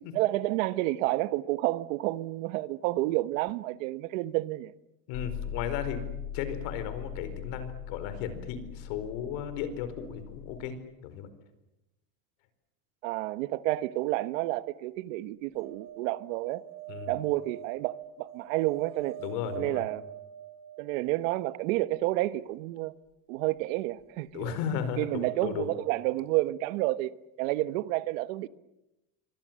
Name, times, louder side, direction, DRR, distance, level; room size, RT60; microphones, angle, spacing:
voice 1, 0.1-4.7 13.0-16.6 17.1-19.2 19.6-20.0 20.8-22.9 23.3-24.6 25.0-27.1 27.4-28.5, right 17 dB, 80° right, 1.2 m, -30 dB
voice 2, 5.1-6.0 6.3-10.7 11.0-11.3 16.9-17.1 19.2-19.8 24.3-25.7, left 8 dB, 70° left, 4.7 m, -35 dB
sound 1, 5.1-10.7, left 9 dB, 55° left, 4.2 m, -40 dB
sound 2, 15.5-21.7 24.0-24.1 24.3-24.4, right 11 dB, 50° right, 2.7 m, -45 dB
28.0 x 25.0 x 7.6 m
cardioid pair, 160°, 39 cm